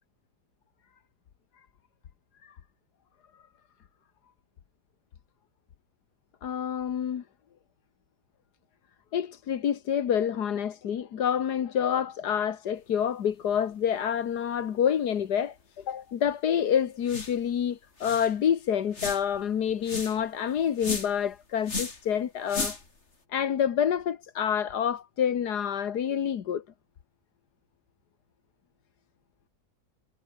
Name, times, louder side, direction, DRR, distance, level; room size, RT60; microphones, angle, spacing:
voice 1, 6.4-7.2 9.1-22.8 23.3-26.6, left 8 dB, 75° left, 1.8 m, -28 dB
sound 1, 17.0-17.4 17.7-17.8 18.0-18.3 18.9-19.4 19.8-20.2 20.8-21.2 21.6-22.0 22.5-23.0, left 3 dB, 40° left, 3.6 m, -34 dB
omnidirectional pair, 1.8 m